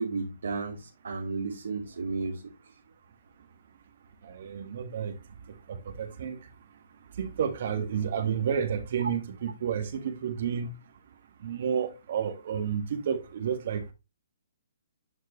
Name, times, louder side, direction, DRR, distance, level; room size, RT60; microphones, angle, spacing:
voice 1, 0.0-2.5, right 4 dB, 70° right, 2.1 m, -33 dB
voice 2, 4.2-5.2 5.7-6.4 7.2-10.7 11.4-13.9, right 7 dB, 55° right, 1.8 m, -31 dB
11.5 x 4.5 x 3.2 m
figure-of-eight pair, 130°, 0 cm